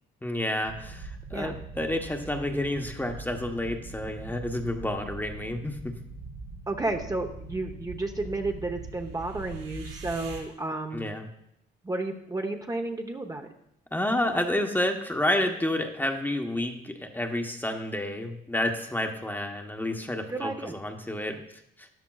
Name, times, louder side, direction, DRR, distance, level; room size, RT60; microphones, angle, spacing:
voice 1, 0.2-6.0 10.9-11.3 13.9-21.4 21.8-21.9, left 1 dB, 10° left, 4 dB, 1.1 m, -30 dB
sound 1, 0.6-10.4, right 3 dB, 75° right, 4.2 m, -42 dB
voice 2, 6.7-11.0 11.8-13.5 20.3-20.7, right 2 dB, 20° right, 3 dB, 1.0 m, -32 dB
13.5 x 10.0 x 2.4 m, 0.76 s
cardioid pair, 90°, 20 cm